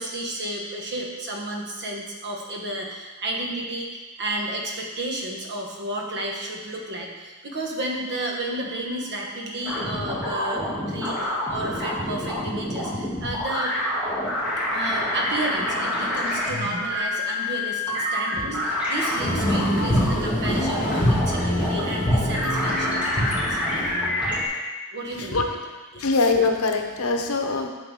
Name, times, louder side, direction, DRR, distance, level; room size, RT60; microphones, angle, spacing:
voice 1, 0.0-13.7 14.7-23.6 24.9-25.5 25.9-26.1, right 1 dB, 55° right, 0 dB, 1.2 m, -32 dB
sound 1, 9.6-24.5, left 1 dB, 5° right, 2.7 m, -27 dB
sound 2, 19.2-24.3, equal, 40° left, 1.2 m, -25 dB
voice 2, 25.9-27.7, left 3 dB, 75° left, 4 dB, 0.8 m, -22 dB
8.1 x 6.5 x 3.7 m, 1.3 s
head